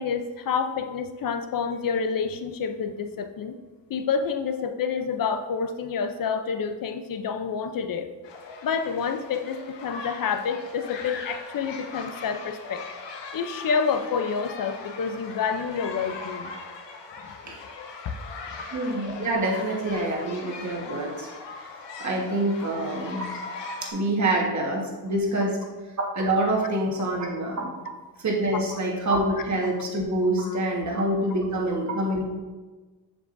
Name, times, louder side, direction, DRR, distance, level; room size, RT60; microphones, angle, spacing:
voice 1, 0.0-3.6 3.9-8.1 8.6-12.8 13.3-16.5 17.2-17.5 18.5-18.7 20.1-20.2 30.4-30.6, left 6 dB, 50° left, 8 dB, 0.7 m, -28 dB
sound 1, 8.2-23.9, left 4 dB, 80° left, 1.2 m, -40 dB
voice 2, 18.7-21.3 22.0-23.3 23.8-25.6 26.1-27.7 28.2-32.2, right 1 dB, 40° right, -1 dB, 1.5 m, -26 dB
7.2 x 7.1 x 2.6 m, 1.3 s
cardioid pair, 110°, 43 cm